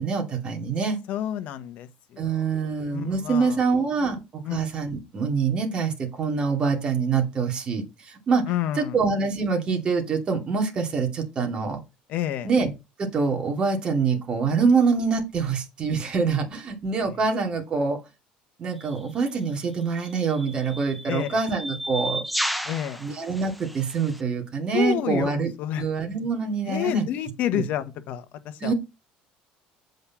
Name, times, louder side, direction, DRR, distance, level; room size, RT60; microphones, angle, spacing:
voice 1, 0.0-1.0 2.2-4.2 4.5-8.4 8.8-11.8 12.4-12.7 13.0-18.0 18.6-22.2 23.0-25.5 25.8-27.0 27.5-27.6 28.6-28.7, right 5 dB, 30° right, 2.7 m, -25 dB
voice 2, 1.1-3.6 4.0-4.1 4.4-4.6 8.5-9.0 12.1-12.5 17.0-17.1 21.1-21.4 22.6-23.0 24.7-25.8 26.6-28.7, left 11 dB, 60° left, 1.3 m, -29 dB
sound 1, 18.8-19.0 20.0-24.2, equal, ahead, 0.8 m, -33 dB
8.2 x 5.3 x 5.9 m
cardioid pair, 140°, 3 cm